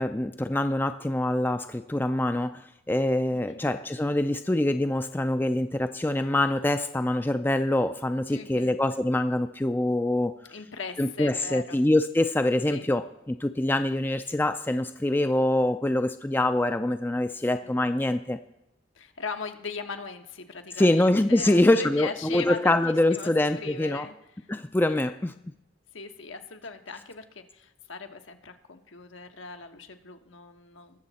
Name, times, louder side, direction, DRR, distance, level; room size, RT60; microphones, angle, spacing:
voice 1, 0.0-10.4 11.0-18.4 20.8-24.1 24.5-25.3, left 1 dB, 10° left, 9 dB, 0.4 m, -25 dB
voice 2, 8.3-8.7 10.5-11.8 12.7-12.9 17.6-17.8 18.9-24.5 24.9-25.0 25.9-31.0, left 4 dB, 80° left, 6 dB, 1.3 m, -39 dB
20.5 x 7.2 x 4.2 m, 0.86 s
head